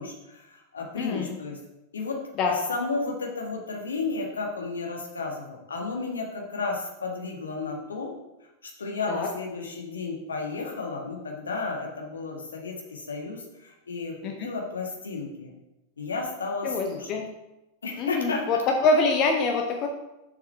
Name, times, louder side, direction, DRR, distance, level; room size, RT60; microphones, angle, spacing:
voice 1, 0.0-1.6 1.9-8.1 8.6-15.5 16.0-17.1 17.8-18.6, left 3 dB, 70° left, 0 dB, 1.7 m, -33 dB
voice 2, 1.0-1.4 2.4-2.6 9.1-9.3 14.2-14.5 16.6-17.2 18.0-19.9, left 3 dB, 35° left, 3 dB, 0.8 m, -25 dB
7.2 x 6.1 x 4.5 m, 0.96 s
figure-of-eight pair, 90°, 0 cm